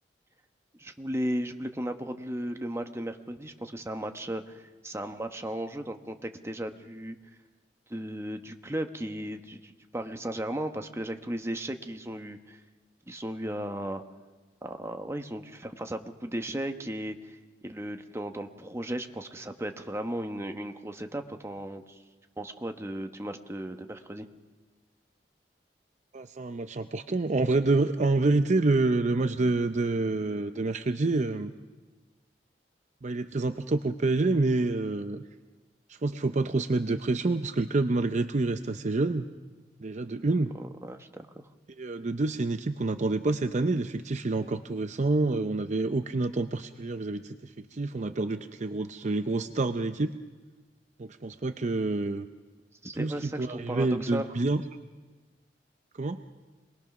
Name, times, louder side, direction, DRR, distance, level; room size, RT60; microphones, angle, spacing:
voice 1, 0.8-7.2 7.9-12.6 13.1-14.0 14.6-22.0 22.4-24.3 40.6-41.4 52.8-54.3, right 1 dB, 15° right, 6 dB, 1.0 m, -35 dB
voice 2, 26.1-31.5 33.0-35.2 35.9-39.3 39.8-40.5 41.8-50.1 51.0-52.2 53.0-54.6 56.0-56.2, right 2 dB, 45° right, 9 dB, 0.6 m, -27 dB
27.0 x 20.5 x 6.0 m, 1.3 s
head